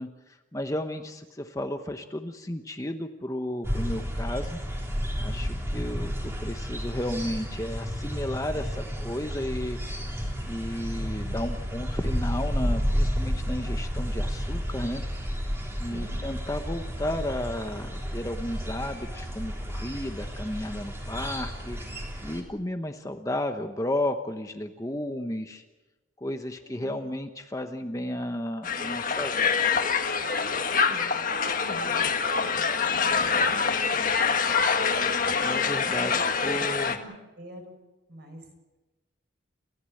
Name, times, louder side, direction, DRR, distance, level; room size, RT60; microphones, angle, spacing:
voice 1, 0.0-4.6 5.2-9.8 10.4-15.0 15.8-21.8 22.2-25.6 26.2-29.6 35.4-36.1 36.4-36.9, left 1 dB, 15° left, 6 dB, 1.0 m, -33 dB
sound 1, 3.6-22.4, equal, 15° right, 3.4 m, -31 dB
voice 2, 15.8-16.2 26.6-27.1 30.7-34.3 36.0-37.7 38.1-38.5, equal, 50° right, 4 dB, 5.9 m, -47 dB
Crowd, 28.6-37.0, left 5 dB, 40° left, 1.6 m, -25 dB
29.5 x 15.0 x 7.9 m, 1.1 s
head